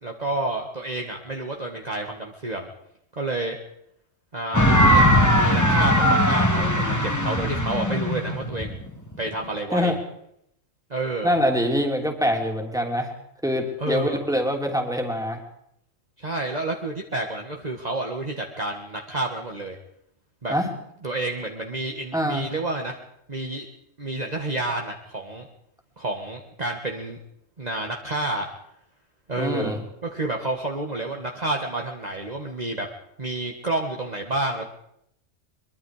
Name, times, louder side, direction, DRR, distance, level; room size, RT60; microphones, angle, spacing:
voice 1, 0.0-2.7 3.2-3.6 4.3-8.8 9.2-9.9 10.9-11.3 13.8-14.2 16.2-19.8 20.4-20.5 21.0-23.0 23.3-23.7 24.0-25.5 26.0-27.2 27.6-28.5 29.3-29.8 30.0-32.9 33.2-34.7, right 2 dB, 35° right, 2 dB, 1.8 m, -29 dB
sound 1, 4.5-9.4, equal, 15° left, 2.3 m, -19 dB
voice 2, 11.2-13.1 13.4-15.4 20.5-20.7 22.1-22.5 29.4-29.8, equal, 5° right, 2 dB, 3.2 m, -24 dB
23.5 x 23.0 x 5.0 m, 0.75 s
omnidirectional pair, 1.3 m